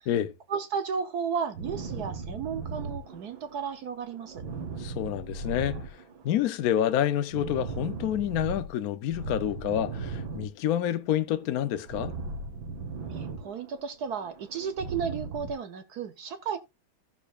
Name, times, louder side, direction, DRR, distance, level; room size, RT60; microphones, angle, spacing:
voice 1, 0.5-4.4 13.1-16.6, right 6 dB, 60° right, 1.2 m, -33 dB
sound 1, 1.5-3.7 3.9-6.5 6.7-8.7 9.1-11.0 11.3-13.8 14.1-15.5, right 4 dB, 80° right, 2.1 m, -38 dB
voice 2, 4.8-5.8 6.2-12.1, left 11 dB, 65° left, 0.9 m, -28 dB
14.5 x 6.7 x 2.4 m
omnidirectional pair, 2.2 m